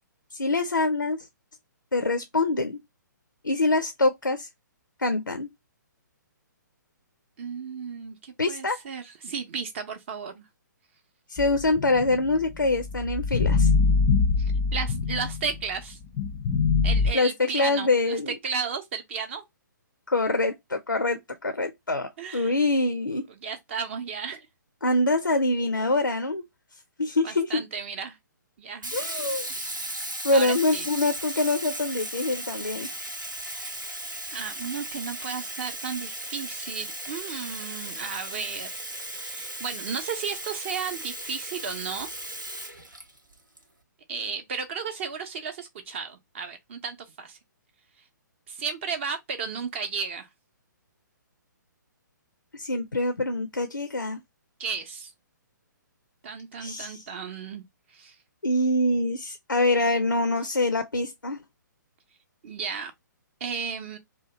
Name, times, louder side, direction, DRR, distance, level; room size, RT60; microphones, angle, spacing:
voice 1, 0.3-1.3 1.9-2.8 3.4-4.5 5.0-5.5 8.4-8.8 11.3-13.7 17.1-18.4 20.1-23.3 24.8-26.4 27.0-27.6 28.9-29.5 30.2-32.9 52.5-54.2 56.6-57.0 58.4-61.4, left 2 dB, 90° left, 0.4 m, -25 dB
voice 2, 7.4-10.4 14.4-16.0 16.8-19.4 22.2-22.5 23.1-24.5 27.2-28.2 28.6-28.9 29.5-29.7 30.3-30.9 34.3-42.1 44.1-47.4 48.5-50.3 54.6-55.1 56.2-57.6 57.9-58.2 62.4-62.9 63.4-64.0, right 6 dB, 35° right, 0.6 m, -34 dB
sound 1, 11.4-15.7 16.2-17.1, left 4 dB, 20° left, 0.5 m, -24 dB
Sink (filling or washing), 28.8-43.6, right 1 dB, 90° right, 1.0 m, -36 dB
2.7 x 2.2 x 2.7 m
figure-of-eight pair, 130°, 10 cm